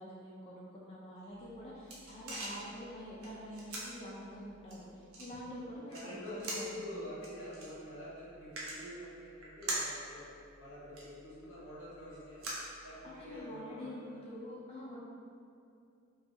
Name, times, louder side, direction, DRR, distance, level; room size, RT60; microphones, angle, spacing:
voice 1, 0.0-6.9 12.7-15.0, equal, 30° left, -6 dB, 0.3 m, -46 dB
sound 1, 1.3-13.4, right 2 dB, 80° right, 0.6 m, -45 dB
voice 2, 5.7-10.3 10.6-12.5 12.8-14.2, equal, 90° left, -8 dB, 0.9 m, -46 dB
2.5 x 2.3 x 2.6 m, 2.5 s
head